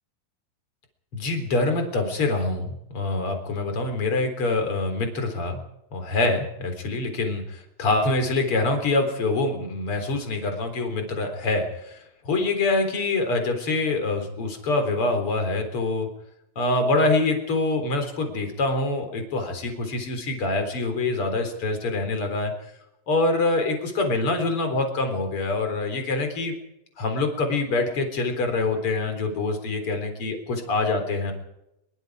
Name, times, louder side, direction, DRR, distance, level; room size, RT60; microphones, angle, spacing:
voice 1, 1.1-5.6 5.9-12.0 12.2-16.1 16.6-22.5 23.1-26.5 27.0-31.3, left 2 dB, 30° left, 6 dB, 4.0 m, -25 dB
24.0 x 23.0 x 4.9 m, 0.85 s
omnidirectional pair, 5.8 m